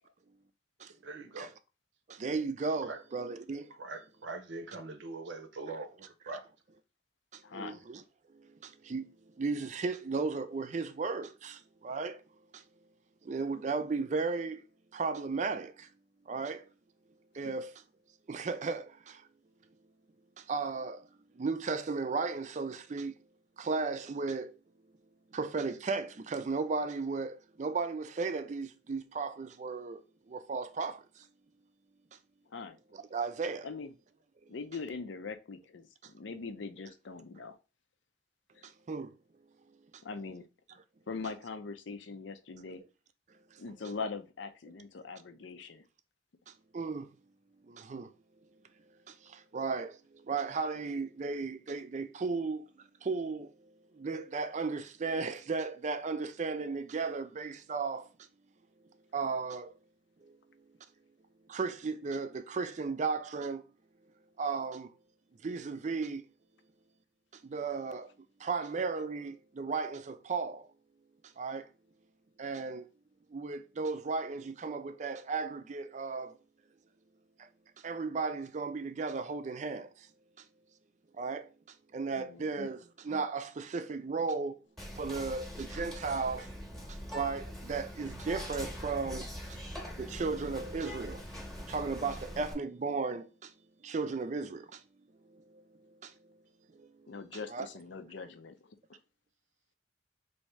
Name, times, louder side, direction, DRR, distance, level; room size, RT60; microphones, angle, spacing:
voice 1, 1.0-1.5 2.9-3.0 3.8-6.4, right 3 dB, 75° right, 0.7 m, -42 dB
voice 2, 2.1-3.7 7.3-8.0 8.3-9.1 9.4-12.2 12.5-12.6 13.2-14.6 14.9-15.9 16.3-16.6 17.3-17.7 18.3-19.3 20.4-21.1 21.3-23.2 23.6-24.5 25.3-30.0 30.3-31.3 32.9-33.7 34.4-34.5 38.6-39.1 39.9-40.0 43.5-43.6 46.5-47.1 47.7-48.1 49.1-52.7 53.0-53.5 53.9-58.1 59.1-59.7 60.2-60.4 61.5-63.6 64.4-64.9 65.4-66.2 67.3-68.1 68.4-70.7 71.4-71.7 72.4-72.9 73.3-76.4 77.4-77.5 77.8-80.1 80.4-80.5 81.1-81.5 81.9-84.6 84.9-86.5 86.9-89.6 90.0-91.2 91.5-93.5 93.8-94.8 95.3-96.1 96.7-97.2 97.5-97.7, right 4 dB, 40° right, 0.4 m, -35 dB
voice 3, 7.4-7.8 17.4-17.5 32.5-32.8 33.6-33.9 34.5-37.6 38.5-38.6 40.0-40.5 41.1-42.8 43.6-45.9 82.1-82.7 97.1-98.6, left 4 dB, 75° left, 0.5 m, -42 dB
Whispering, 84.8-92.5, equal, 5° left, 0.9 m, -43 dB
3.1 x 2.7 x 4.5 m
head